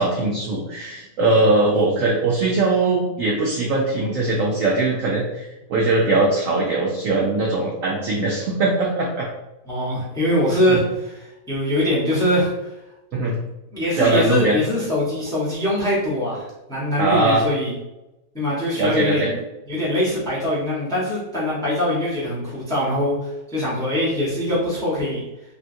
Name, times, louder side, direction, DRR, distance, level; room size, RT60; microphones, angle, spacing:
voice 1, 0.0-9.3 10.7-10.8 13.1-13.4 14.0-14.6 17.0-17.4 18.8-19.3, right 2 dB, 80° right, -2 dB, 0.7 m, -21 dB
voice 2, 9.7-12.7 13.7-17.7 18.3-19.4 19.7-25.2, left 1 dB, 5° left, -7 dB, 0.7 m, -23 dB
3.7 x 2.3 x 2.6 m, 0.95 s
omnidirectional pair, 1.9 m